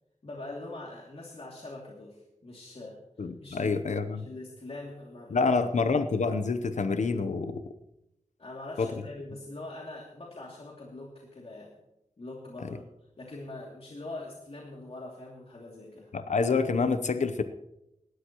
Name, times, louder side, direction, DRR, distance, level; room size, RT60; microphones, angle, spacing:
voice 1, 0.2-5.5 8.4-11.7 12.2-12.8 13.2-16.1, left 2 dB, 50° left, -2 dB, 2.7 m, -43 dB
voice 2, 3.2-4.3 5.3-7.7 8.8-8.9 12.6-12.7 16.1-17.4, left 4 dB, 70° left, 10 dB, 0.8 m, -27 dB
18.0 x 13.0 x 3.0 m, 0.86 s
wide cardioid pair, 75°, 13 cm